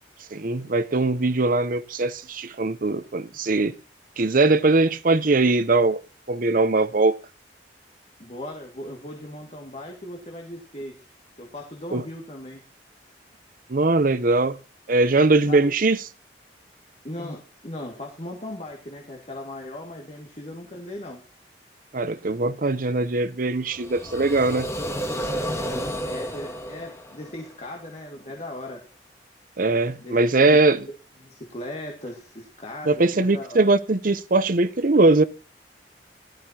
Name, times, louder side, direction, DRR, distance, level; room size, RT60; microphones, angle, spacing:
voice 1, 0.3-3.7 4.2-6.0 6.3-7.2 11.9-12.0 13.7-14.6 14.9-16.0 21.9-24.7 29.6-30.8 32.9-35.2, right 3 dB, 50° right, 0.8 m, -21 dB
voice 2, 8.2-11.1 11.4-12.6 15.5-15.6 17.0-21.2 26.0-28.9 30.0-30.8 31.2-33.6, left 1 dB, 40° left, 2.1 m, -38 dB
sound 1, 23.6-27.7, equal, 15° left, 2.1 m, -31 dB
17.0 x 12.5 x 2.9 m
head